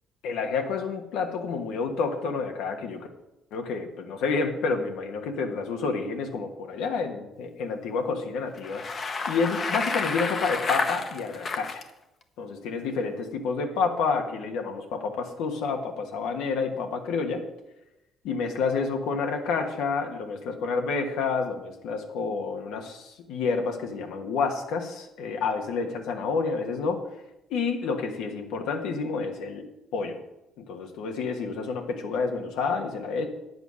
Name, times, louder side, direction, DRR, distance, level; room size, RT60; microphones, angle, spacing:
voice 1, 0.2-3.1 3.5-8.8 9.3-11.8 12.4-17.4 18.2-27.0 27.5-29.6 29.9-30.2 30.6-33.3, left 4 dB, 85° left, 3 dB, 1.4 m, -29 dB
Bicycle, 8.5-11.8, left 4 dB, 35° left, 0.9 m, -30 dB
9.6 x 8.0 x 6.3 m, 0.94 s
cardioid pair, 140°, 0 cm